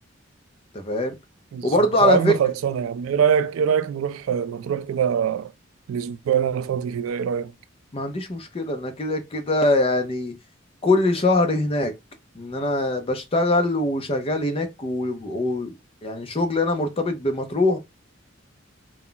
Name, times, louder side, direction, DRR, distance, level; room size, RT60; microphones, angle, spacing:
voice 1, 0.7-1.1 1.6-2.3 7.9-10.3 10.8-11.9 12.4-15.8 16.0-17.8, left 2 dB, 25° left, 0.4 m, -23 dB
voice 2, 1.5-5.5 5.9-7.5, right 8 dB, 85° right, 0.3 m, -23 dB
2.2 x 2.0 x 3.7 m
head